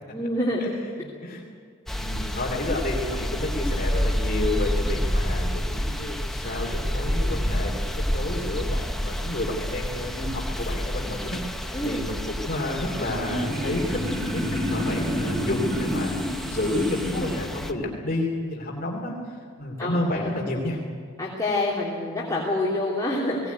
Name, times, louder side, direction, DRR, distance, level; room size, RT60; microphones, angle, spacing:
voice 1, 0.0-0.7 11.7-12.1 19.8-20.3 21.2-23.5, left 1 dB, 15° left, -5 dB, 3.1 m, -27 dB
voice 2, 1.0-1.4 2.0-7.8 8.1-20.8, left 1 dB, 45° left, -1 dB, 2.8 m, -30 dB
sound 1, 1.9-17.7, equal, ahead, 0.9 m, -29 dB
sound 2, 12.5-17.4, equal, 45° right, 4.5 m, -29 dB
20.5 x 18.0 x 9.3 m, 2.1 s
head